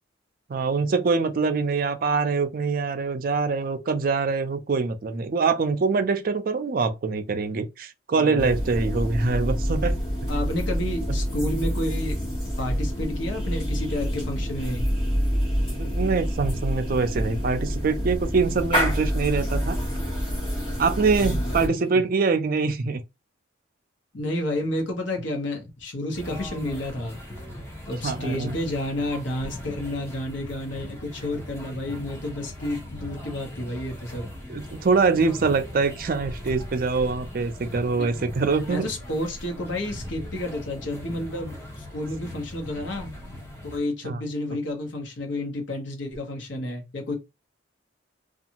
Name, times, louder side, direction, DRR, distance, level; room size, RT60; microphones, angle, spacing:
voice 1, 0.5-10.0 15.7-19.8 20.8-23.0 28.0-28.6 34.5-38.9 44.0-44.2, right 4 dB, 45° right, 0.4 m, -24 dB
voice 2, 8.1-8.5 10.3-12.3 12.6-14.9 21.2-21.6 24.1-27.2 27.9-34.3 37.9-38.1 38.7-43.1 43.6-47.1, left 1 dB, 70° left, 0.9 m, -30 dB
sound 1, 8.4-21.7, equal, 30° left, 1.4 m, -27 dB
sound 2, 26.1-43.8, left 1 dB, 15° left, 0.7 m, -39 dB
2.6 x 2.4 x 2.8 m
head